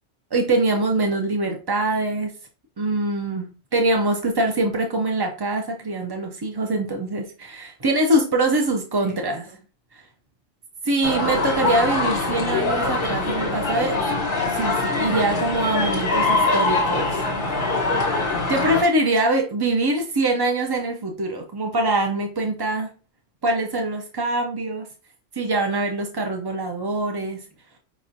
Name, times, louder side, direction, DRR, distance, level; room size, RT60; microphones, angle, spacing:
voice 1, 0.3-2.3 2.8-9.4 9.9-10.0 10.8-13.9 14.6-17.2 18.5-22.9 23.4-24.9 25.3-27.4, right 2 dB, 40° right, 3 dB, 0.3 m, -23 dB
voice 2, 9.0-9.6 13.3-14.3 16.2-16.7 17.2-18.0, right 2 dB, 15° right, -4 dB, 2.2 m, -41 dB
sound 1, 11.0-18.8, left 3 dB, 50° left, 1.4 m, -23 dB
5.3 x 3.0 x 2.6 m, 0.33 s
omnidirectional pair, 1.3 m